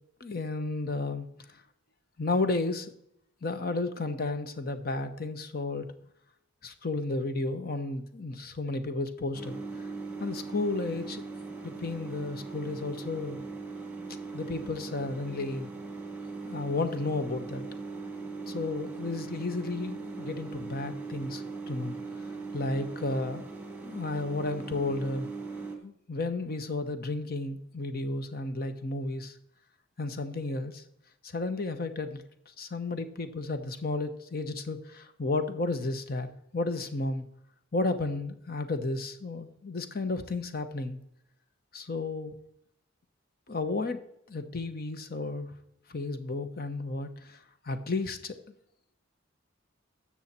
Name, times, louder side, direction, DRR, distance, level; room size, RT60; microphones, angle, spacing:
voice 1, 0.2-1.6 2.2-2.9 3.4-5.9 6.6-9.9 10.2-11.2 11.6-13.4 14.3-15.7 16.4-17.6 18.5-22.2 22.5-23.5 23.8-25.3 25.8-29.4 30.0-30.8 31.2-32.2 32.6-37.2 37.7-41.0 41.7-42.3 43.5-44.0 44.3-45.5 45.9-48.4, left 2 dB, 50° left, 9 dB, 1.0 m, -33 dB
sound 1, 9.3-25.8, right 4 dB, 10° right, 1.9 m, -40 dB
13.0 x 7.4 x 4.3 m, 0.75 s
head